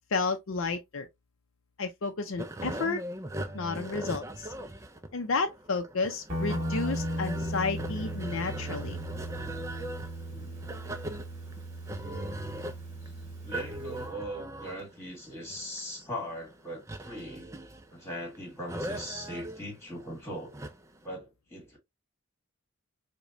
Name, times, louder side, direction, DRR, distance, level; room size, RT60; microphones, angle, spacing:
voice 1, 0.1-1.1 1.8-3.0 3.5-4.5 5.1-9.0, left 4 dB, 70° left, 0.5 m, -31 dB
sound 1, 2.4-21.0, right 1 dB, 15° right, 0.4 m, -40 dB
Guitar, 6.3-14.1, right 1 dB, 30° right, 1.9 m, -36 dB
voice 2, 10.3-10.6 13.0-13.1 13.4-17.5 17.9-20.6 21.0-21.8, equal, 10° left, 1.8 m, -40 dB
4.9 x 2.2 x 2.6 m
head